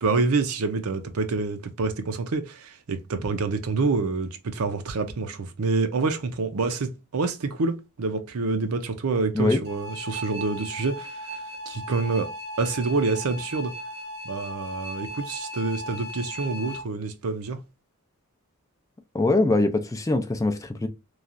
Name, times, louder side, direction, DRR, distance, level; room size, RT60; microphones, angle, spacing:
voice 1, 0.0-12.3 12.6-13.7 14.2-17.6, right 3 dB, 80° right, 0.6 m, -27 dB
sound 1, 9.7-16.8, equal, 50° right, 0.8 m, -37 dB
voice 2, 19.1-20.9, left 2 dB, 15° left, 0.4 m, -22 dB
3.1 x 2.3 x 2.5 m
head